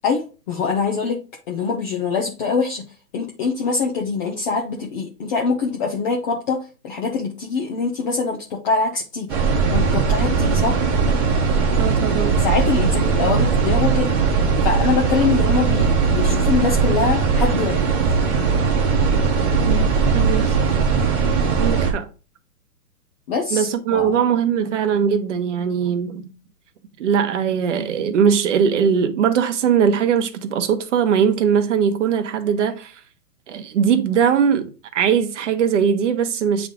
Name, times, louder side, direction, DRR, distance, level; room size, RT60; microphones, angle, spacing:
voice 1, 0.0-1.2 1.5-2.8 3.1-9.3 9.7-10.8 12.4-14.1 14.6-17.8 23.3-24.2, left 4 dB, 30° left, 0.8 m, -23 dB
sound 1, 9.3-21.9, right 5 dB, 5° right, 0.5 m, -19 dB
voice 2, 11.8-12.4 19.7-20.6 21.6-22.1 23.5-26.3 27.0-33.0 33.5-36.7, right 7 dB, 50° right, 1.1 m, -20 dB
8.4 x 3.6 x 3.8 m
hypercardioid pair, 145°, 48 cm